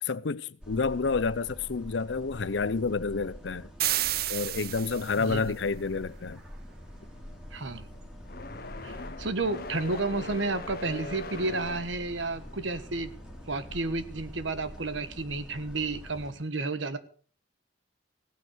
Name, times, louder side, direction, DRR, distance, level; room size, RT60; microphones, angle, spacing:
voice 1, 0.0-3.7 4.3-6.4, left 4 dB, 70° left, 0.6 m, -29 dB
sound 1, 0.6-16.3, equal, 5° right, 2.7 m, -46 dB
sound 2, 3.8-5.3, right 13 dB, 50° right, 0.6 m, -30 dB
voice 2, 5.2-5.5 7.5-7.8 8.8-13.1 13.5-17.0, right 3 dB, 75° right, 1.3 m, -31 dB
sound 3, 6.7-14.6, left 2 dB, 50° left, 1.1 m, -43 dB
16.0 x 9.1 x 6.4 m
head